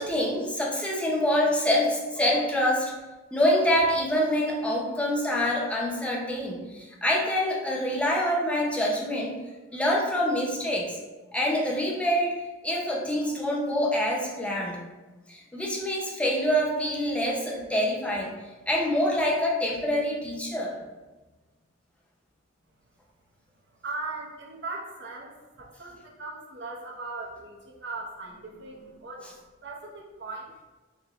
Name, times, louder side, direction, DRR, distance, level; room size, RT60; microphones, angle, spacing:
voice 1, 0.0-2.9 3.3-9.4 9.7-11.0 11.3-12.3 12.6-14.8 15.3-18.4 18.7-20.8, equal, 5° left, -2 dB, 0.6 m, -26 dB
voice 2, 23.8-29.3 29.6-30.6, right 3 dB, 65° right, -2 dB, 0.8 m, -39 dB
4.5 x 2.7 x 3.0 m, 1.2 s
head